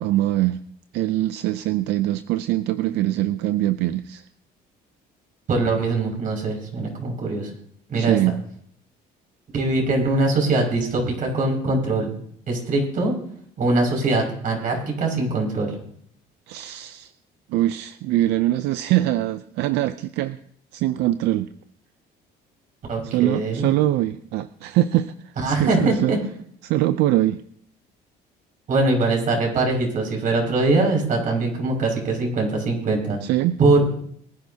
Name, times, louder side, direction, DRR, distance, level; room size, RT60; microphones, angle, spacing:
voice 1, 0.0-0.6 0.9-4.2 7.9-8.4 16.5-17.1 17.5-20.4 20.7-21.5 23.1-26.1 26.6-27.4 33.2-33.6, right 14 dB, 85° right, 12 dB, 0.5 m, -23 dB
voice 2, 5.5-7.5 7.9-8.2 9.5-12.1 12.5-13.1 13.6-15.7 22.9-23.6 25.4-26.2 28.7-33.2 33.6-33.8, right 2 dB, 55° right, 1 dB, 6.1 m, -22 dB
23.5 x 10.5 x 2.8 m, 0.62 s
cardioid pair, 110°, 17 cm